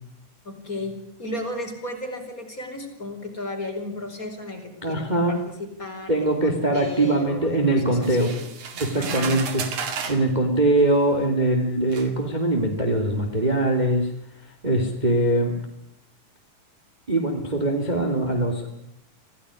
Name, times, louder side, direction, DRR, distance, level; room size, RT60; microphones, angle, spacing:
voice 1, 0.4-8.4 9.0-9.3, left 2 dB, 25° left, 4 dB, 5.1 m, -34 dB
voice 2, 4.8-5.4 6.1-8.3 8.8-9.6 10.1-14.1 14.6-15.5 17.1-18.7, right 1 dB, 15° right, 3 dB, 2.8 m, -22 dB
sound 1, 8.0-10.3 11.2-11.3 11.9-12.1, right 6 dB, 70° right, 3.7 m, -32 dB
26.5 x 17.0 x 9.9 m, 0.78 s
omnidirectional pair, 3.6 m